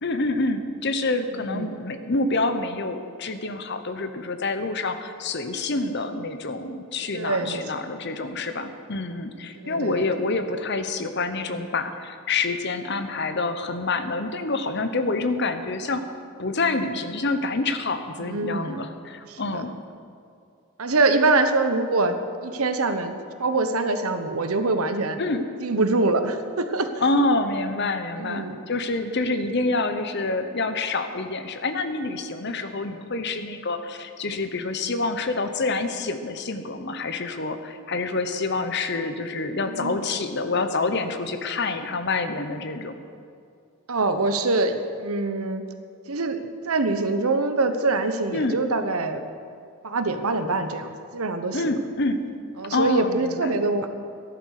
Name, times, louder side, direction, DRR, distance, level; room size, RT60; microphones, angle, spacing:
voice 1, 0.0-16.0 16.4-19.7 25.2-25.5 27.0-42.9 48.3-48.6 51.5-52.2 52.7-53.6, left 3 dB, 50° left, 8 dB, 1.0 m, -27 dB
voice 2, 1.3-1.8 7.1-7.9 9.5-10.0 18.2-18.8 19.3-19.6 20.8-22.2 22.4-23.1 23.4-25.2 25.6-26.9 28.2-28.6 32.5-32.6 39.7-40.0 43.9-45.6 46.1-46.4 46.7-49.2 49.8-51.6 52.6-53.9, right 3 dB, 85° right, 8 dB, 1.1 m, -24 dB
13.5 x 11.0 x 6.6 m, 2.4 s
head